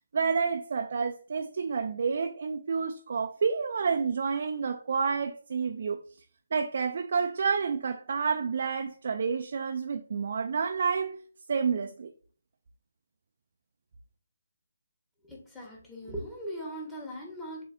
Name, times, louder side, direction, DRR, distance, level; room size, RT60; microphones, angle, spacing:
voice 1, 0.1-6.0 6.5-11.2 11.5-12.1, right 5 dB, 50° right, 0.4 m, -29 dB
voice 2, 15.3-17.6, equal, 10° left, 1.2 m, -39 dB
6.9 x 2.7 x 2.6 m
figure-of-eight pair, 145°, 0 cm